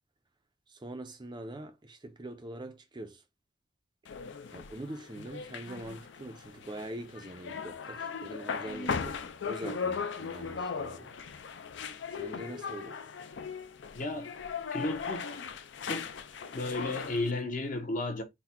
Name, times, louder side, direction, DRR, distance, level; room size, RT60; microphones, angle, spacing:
voice 1, 0.7-3.2 4.5-9.2 9.4-11.1 12.2-13.0, right 1 dB, 20° right, 0.4 m, -43 dB
sound 1, 4.1-17.3, left 5 dB, 65° left, 0.4 m, -38 dB
voice 2, 13.9-14.3 14.7-15.4 15.8-16.1 16.5-18.2, left 2 dB, 40° left, 0.8 m, -33 dB
4.0 x 2.1 x 4.2 m
head